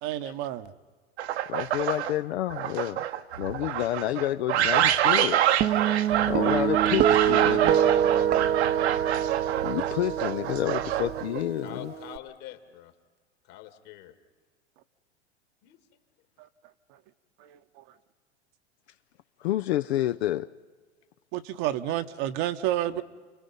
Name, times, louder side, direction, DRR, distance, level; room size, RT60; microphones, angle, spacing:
voice 1, 0.0-0.7 6.0-6.2 17.4-17.8 21.3-23.0, right 13 dB, 50° right, 9 dB, 1.0 m, -30 dB
sound 1, 1.2-2.1 2.5-11.4, right 11 dB, 70° right, 1.1 m, -26 dB
voice 2, 1.5-3.0 3.4-5.4 6.2-7.8 9.6-11.9 19.4-20.5, left 13 dB, 65° left, 11 dB, 0.6 m, -29 dB
Guitar, 5.6-12.2, right 10 dB, 30° right, 0.8 m, -26 dB
voice 3, 7.2-8.7 11.6-12.9 13.5-14.1 15.6-15.8 21.9-22.0 22.9-23.0, left 12 dB, 50° left, 7 dB, 2.2 m, -44 dB
29.5 x 20.5 x 5.4 m, 1.5 s
hypercardioid pair, 100°, 34 cm